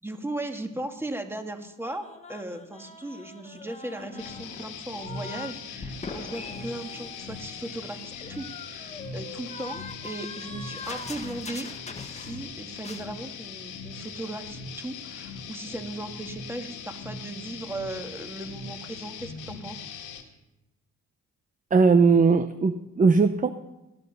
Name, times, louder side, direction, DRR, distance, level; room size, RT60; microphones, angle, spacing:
voice 1, 0.0-8.0 8.3-11.7 12.0-19.8, right 1 dB, 10° right, 5 dB, 2.0 m, -37 dB
sound 1, 1.8-5.6 5.8-12.5 12.8-13.1, left 3 dB, 20° left, 1.5 m, -42 dB
sound 2, 4.2-20.2, left 5 dB, 90° left, 2.2 m, -40 dB
voice 2, 21.7-23.5, right 4 dB, 25° right, 10 dB, 0.8 m, -19 dB
18.5 x 12.0 x 5.5 m, 0.95 s
cardioid pair, 90°, 30 cm